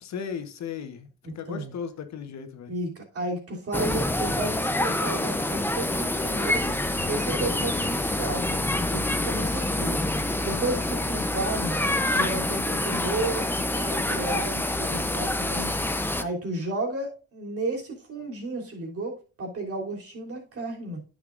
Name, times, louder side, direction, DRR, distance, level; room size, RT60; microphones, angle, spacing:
voice 1, 0.0-2.7 10.4-10.8, left 7 dB, 65° left, 8 dB, 1.3 m, -36 dB
voice 2, 1.2-1.7 2.7-6.7 7.1-10.0 10.4-11.8 12.1-15.7 16.0-21.0, right 2 dB, 50° right, 0 dB, 3.3 m, -33 dB
sound 1, 3.7-16.2, left 1 dB, 5° left, 0.7 m, -27 dB
9.9 x 6.9 x 2.6 m, 0.34 s
cardioid pair, 90°, 30 cm